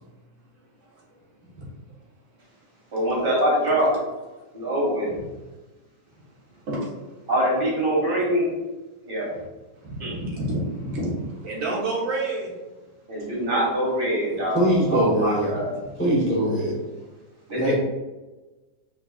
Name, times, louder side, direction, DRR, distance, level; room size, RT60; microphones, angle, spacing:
voice 1, 2.9-3.9 4.5-5.1 7.3-8.5 9.1-9.3 10.0-10.1 13.1-15.7 17.5-17.8, right 1 dB, 30° right, -4 dB, 1.7 m, -24 dB
voice 2, 9.8-12.5 15.0-15.1 17.5-17.6, right 2 dB, 85° right, -4 dB, 2.1 m, -29 dB
voice 3, 14.5-15.5 16.0-16.8 17.6-17.8, right 1 dB, 10° left, -4 dB, 0.8 m, -22 dB
5.3 x 4.1 x 2.4 m, 1.1 s
omnidirectional pair, 2.1 m